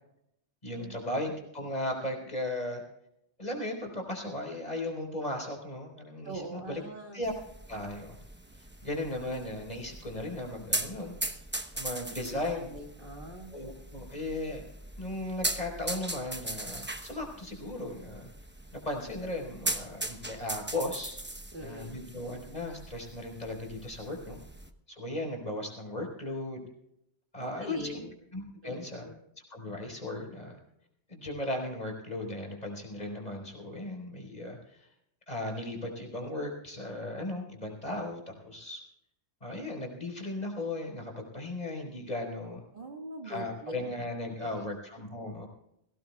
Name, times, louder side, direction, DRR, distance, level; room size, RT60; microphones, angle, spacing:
voice 1, 0.6-2.8 3.4-6.8 7.1-7.3 7.7-8.2 8.6-11.1 11.7-12.7 13.5-14.6 15.0-18.3 18.8-21.1 21.6-24.4 24.9-26.7 27.3-27.9 28.3-29.1 29.5-30.6 31.1-34.9 35.3-38.8 39.4-42.6 43.2-45.5, left 1 dB, 35° left, 1 dB, 4.5 m, -36 dB
voice 2, 6.2-7.2 12.3-13.5 21.5-21.9 27.4-28.1 28.6-29.2 42.7-43.7 44.4-44.7, right 1 dB, 50° right, 2 dB, 2.1 m, -42 dB
sound 1, 7.2-24.7, right 1 dB, 10° right, 0.8 m, -39 dB
22.0 x 17.5 x 2.3 m, 0.79 s
omnidirectional pair, 1.2 m